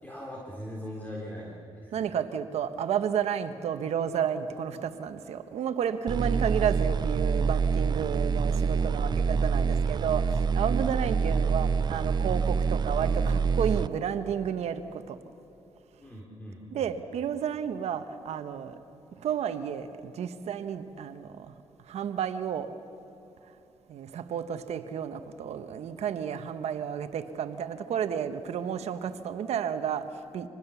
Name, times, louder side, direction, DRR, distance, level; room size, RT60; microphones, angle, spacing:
voice 1, 0.0-2.1 8.8-9.7 16.0-16.9, equal, 15° left, -3 dB, 3.6 m, -41 dB
voice 2, 1.9-15.2 16.7-18.8 19.1-21.5 21.8-22.7 23.9-30.5, right 8 dB, 80° right, 9 dB, 1.2 m, -31 dB
sound 1, 6.1-13.9, right 5 dB, 40° right, 0.5 m, -26 dB
26.0 x 20.0 x 7.1 m, 2.9 s
cardioid pair, 80°, 11 cm